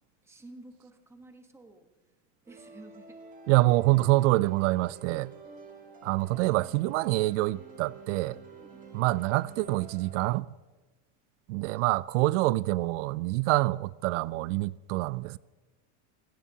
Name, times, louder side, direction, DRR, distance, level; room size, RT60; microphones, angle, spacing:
voice 1, 0.2-1.9 2.4-3.2 8.5-8.8 11.7-12.0, right 2 dB, 5° right, 1.1 m, -51 dB
sound 1, 2.5-10.2, right 4 dB, 20° right, 2.1 m, -50 dB
voice 2, 3.5-5.3 6.0-8.4 8.9-10.5 11.5-15.4, right 19 dB, 80° right, 0.5 m, -26 dB
27.0 x 16.5 x 2.8 m
supercardioid pair, 165°, 36 cm